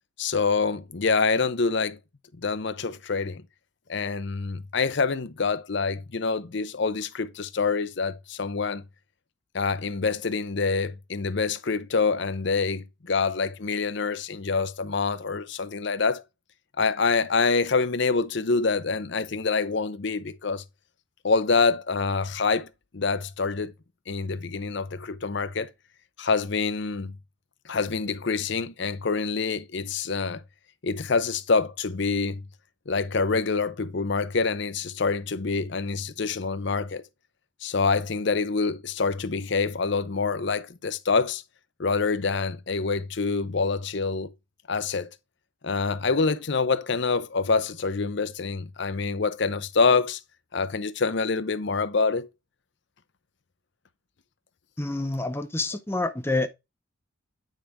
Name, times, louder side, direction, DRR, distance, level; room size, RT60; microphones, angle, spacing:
voice 1, 0.2-2.0 2.4-3.4 3.9-8.8 9.5-16.2 16.8-20.6 21.2-22.7 22.9-23.7 24.1-25.7 26.2-27.1 27.7-30.4 30.8-32.4 32.9-37.0 37.6-41.4 41.8-44.3 44.7-45.1 45.6-50.2 50.5-52.3, left 4 dB, 55° left, 0.7 m, -26 dB
voice 2, 54.8-56.5, left 2 dB, 10° left, 0.6 m, -27 dB
9.2 x 5.0 x 3.4 m
head